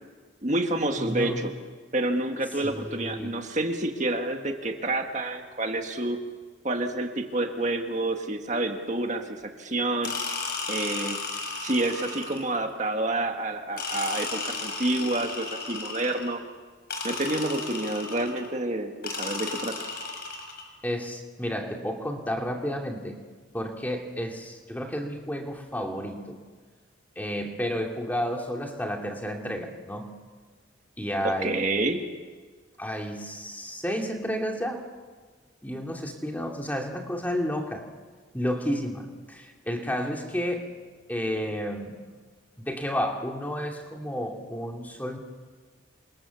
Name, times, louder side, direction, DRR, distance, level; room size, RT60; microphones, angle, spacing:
voice 1, 0.4-1.5 1.9-6.2 6.6-10.1 10.7-11.2 11.6-16.4 17.0-19.9 31.2-32.0, right 2 dB, 40° right, 4 dB, 1.9 m, -28 dB
voice 2, 1.0-1.4 2.6-3.4 20.8-23.2 23.5-26.4 27.2-30.1 31.0-31.9 32.8-34.9 35.6-37.9 38.3-40.7 41.1-42.0 42.6-45.2, equal, 10° left, 2 dB, 2.6 m, -31 dB
sound 1, 10.0-12.6 13.8-16.4 16.9-18.5 19.0-20.7, left 4 dB, 55° left, 5.4 m, -34 dB
28.5 x 26.0 x 7.1 m, 1.5 s
head